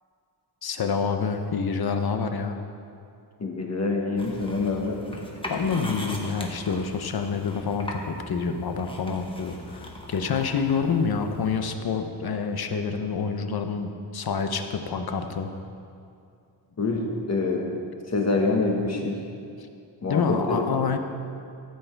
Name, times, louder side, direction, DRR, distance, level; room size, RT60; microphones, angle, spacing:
voice 1, 0.6-2.6 5.5-15.5 20.1-21.0, left 5 dB, 55° left, 6 dB, 0.9 m, -27 dB
voice 2, 3.4-5.2 16.8-17.7 18.1-19.2 20.0-20.6, left 3 dB, 35° left, 0 dB, 1.4 m, -26 dB
sound 1, 4.2-11.6, left 1 dB, 10° left, 1.2 m, -40 dB
14.0 x 8.1 x 4.6 m, 2.5 s
wide cardioid pair, 135°, 44 cm